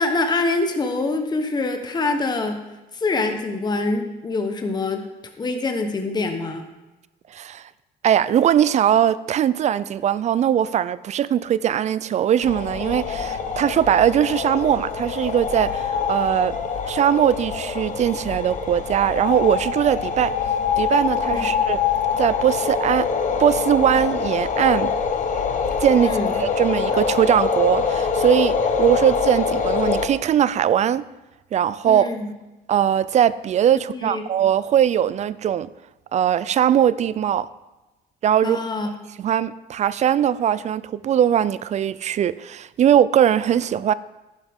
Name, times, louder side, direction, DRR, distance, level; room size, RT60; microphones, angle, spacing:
voice 1, 0.0-2.6 2.9-5.0 5.4-6.7 21.3-21.5 26.0-26.3 31.8-32.3 33.9-34.2 38.4-38.9, left 3 dB, 25° left, 5 dB, 1.1 m, -25 dB
voice 2, 7.3-7.7 8.0-16.6 16.9-20.3 20.8-21.8 22.2-23.1 23.4-24.9 25.8-31.0 31.5-32.1 32.7-35.7 36.1-37.5 38.2-38.6 39.2-43.9, right 10 dB, 45° right, 17 dB, 0.4 m, -20 dB
sound 1, 12.4-30.1, left 6 dB, 45° left, 1.2 m, -24 dB
11.0 x 11.0 x 3.6 m, 1.1 s
cardioid pair, 110°, 17 cm